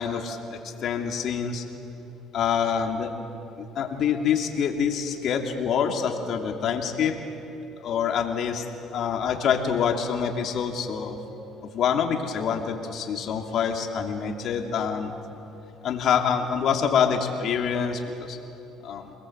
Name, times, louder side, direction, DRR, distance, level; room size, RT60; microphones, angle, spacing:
voice 1, 0.0-1.6 2.3-3.1 3.6-7.1 7.8-8.6 8.9-11.2 11.7-15.1 15.8-18.0 18.3-18.4 18.8-19.1, left 7 dB, 60° left, 3 dB, 2.9 m, -26 dB
28.5 x 20.5 x 8.1 m, 2.9 s
supercardioid pair, 95°, 0 cm